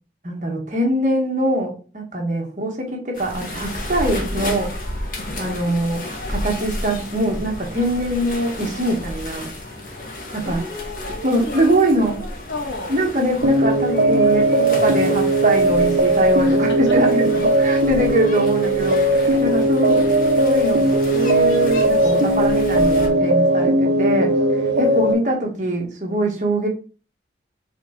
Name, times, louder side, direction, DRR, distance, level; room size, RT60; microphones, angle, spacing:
voice 1, 0.2-4.8 5.4-6.0 6.3-9.5 10.3-10.6 11.2-12.2 12.9-20.0 20.4-24.3 24.8-26.7, right 1 dB, 40° right, 1 dB, 1.7 m, -23 dB
sound 1, 3.1-23.1, left 1 dB, 45° left, 1.8 m, -32 dB
voice 2, 5.5-5.8 10.4-13.0 14.5-15.3 16.5-17.0 18.0-18.1 19.3-19.4 19.8-20.2 24.6-25.0 25.3-25.7, left 2 dB, 80° left, 1 dB, 2.1 m, -35 dB
sound 2, 13.4-25.1, right 1 dB, 65° right, 1.0 m, -18 dB
8.1 x 4.0 x 4.0 m, 0.37 s
head